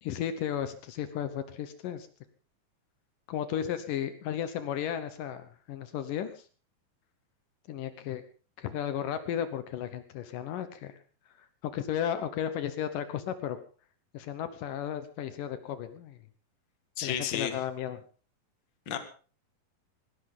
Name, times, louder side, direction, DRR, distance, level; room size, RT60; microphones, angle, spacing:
voice 1, 0.0-2.1 3.3-6.3 7.7-8.2 8.6-10.9 11.6-13.6 14.1-16.2 17.0-18.0, left 9 dB, 70° left, 10 dB, 2.6 m, -34 dB
voice 2, 17.0-17.5 18.9-19.0, left 9 dB, 40° left, 7 dB, 1.9 m, -31 dB
18.0 x 17.0 x 3.8 m, 0.38 s
omnidirectional pair, 4.1 m